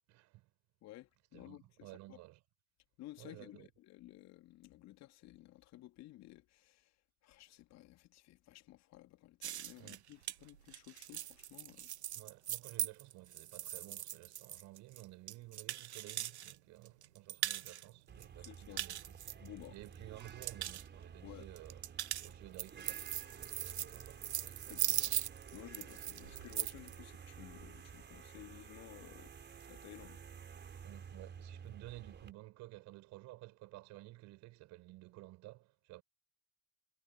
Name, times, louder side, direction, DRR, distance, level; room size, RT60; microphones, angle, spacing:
voice 1, 0.1-0.5 1.3-2.4 3.2-3.7 9.8-10.0 12.1-19.0 19.7-21.8 22.2-25.2 30.8-36.0, right 19 dB, 55° right, 5.5 m, -54 dB
voice 2, 0.8-2.2 3.0-6.9 7.2-11.9 18.4-18.8 19.4-19.8 21.2-21.5 24.7-24.8 25.5-30.2, left 16 dB, 50° left, 3.2 m, -55 dB
sound 1, 9.4-16.5 16.8-17.8 18.2-19.9 20.2-20.8 21.6-26.9, right 12 dB, 80° right, 0.8 m, -40 dB
sound 2, 18.1-32.3, right 7 dB, 30° right, 4.7 m, -52 dB
figure-of-eight pair, 65°, 33 cm